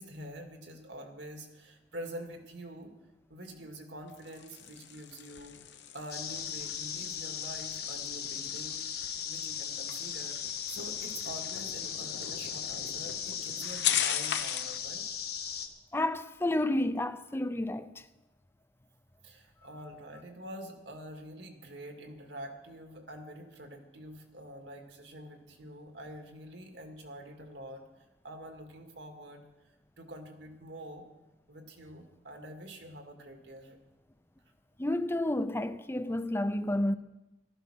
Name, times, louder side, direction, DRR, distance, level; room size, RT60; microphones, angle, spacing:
voice 1, 0.0-2.9 3.3-5.6 5.9-8.9 9.2-10.4 10.7-15.0 19.2-27.8 28.2-29.5 30.0-31.0 31.5-33.8, right 1 dB, 75° right, 2.2 m, -46 dB
sound 1, 4.1-14.8, left 9 dB, 80° left, 1.0 m, -38 dB
sound 2, 6.1-15.7, left 8 dB, 60° left, 1.4 m, -37 dB
voice 2, 15.9-17.9 34.8-36.9, left 1 dB, 15° left, 0.6 m, -30 dB
14.5 x 13.0 x 6.2 m
head